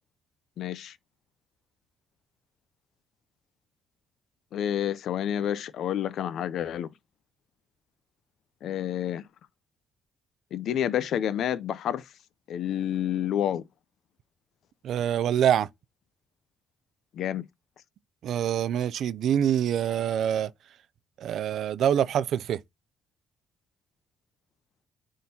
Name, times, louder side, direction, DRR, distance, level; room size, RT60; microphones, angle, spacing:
voice 1, 0.6-0.9 4.5-6.9 8.6-9.2 10.5-12.0 12.5-13.6 17.1-17.4, left 10 dB, 75° left, 0.5 m, -29 dB
voice 2, 14.8-15.7 18.2-20.5 21.2-22.6, right 9 dB, 70° right, 0.4 m, -25 dB
9.3 x 3.8 x 2.8 m
cardioid pair, 90°, 0 cm